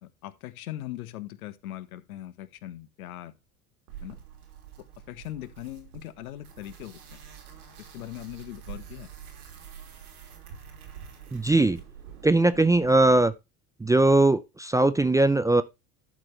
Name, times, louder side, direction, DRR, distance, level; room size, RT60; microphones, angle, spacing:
voice 1, 0.0-3.3 4.0-4.2 5.1-7.2 7.8-9.1, left 14 dB, 75° left, 1.2 m, -40 dB
sound 1, 3.9-13.3, right 8 dB, 80° right, 3.0 m, -46 dB
voice 2, 11.3-11.8 12.2-13.3 13.8-15.6, right 2 dB, 10° right, 0.5 m, -20 dB
11.5 x 6.0 x 3.2 m
hypercardioid pair, 75°, 44 cm